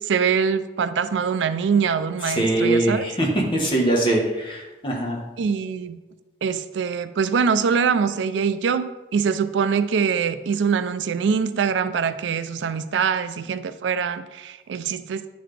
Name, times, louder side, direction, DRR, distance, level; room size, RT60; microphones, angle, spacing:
voice 1, 0.1-3.0 5.4-6.0 6.4-15.3, right 6 dB, 85° right, 12 dB, 0.4 m, -23 dB
voice 2, 2.2-5.2, right 1 dB, 25° left, -1 dB, 1.1 m, -22 dB
10.0 x 4.0 x 3.3 m, 1.1 s
head